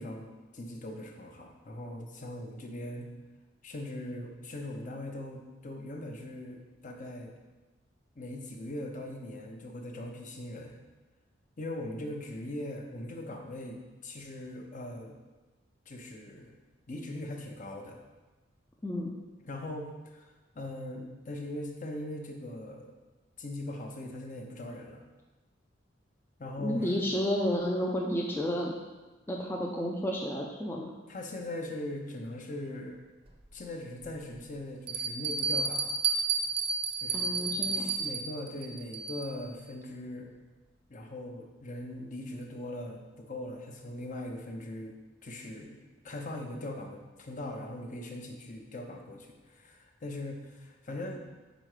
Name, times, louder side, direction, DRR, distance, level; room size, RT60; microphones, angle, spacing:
voice 1, 0.0-3.1 3.6-7.3 8.2-10.8 11.6-15.1 15.9-16.5 16.9-18.0 19.4-22.9 23.4-25.0 26.4-26.9 31.1-33.0 33.5-35.9 37.0-40.3 40.9-45.0 45.2-45.8 46.0-51.2, left 1 dB, 40° left, 2 dB, 0.7 m, -40 dB
voice 2, 18.8-19.1 26.6-28.7 29.3-30.9 37.1-37.9, equal, 10° left, -1 dB, 0.4 m, -31 dB
Bell, 33.3-33.4 34.0-34.1 34.9-39.4, right 4 dB, 30° right, 0.7 m, -31 dB
5.1 x 4.4 x 4.9 m, 1.2 s
head